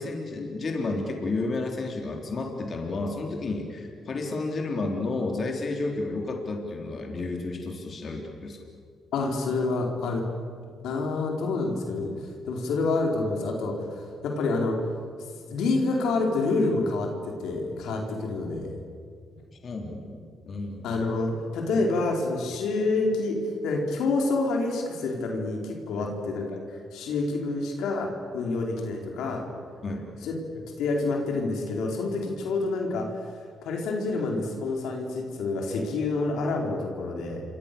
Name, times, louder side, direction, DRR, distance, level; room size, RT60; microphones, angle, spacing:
voice 1, 0.0-8.6 19.6-20.9 26.0-26.1 29.8-30.1, left 3 dB, 45° left, 1 dB, 3.7 m, -31 dB
voice 2, 9.1-10.2 10.8-14.8 15.5-18.7 20.8-29.4 30.2-30.3 30.7-37.4, left 3 dB, 85° left, 1 dB, 4.7 m, -28 dB
28.5 x 25.5 x 7.1 m, 2.2 s
cardioid pair, 90°, 0 cm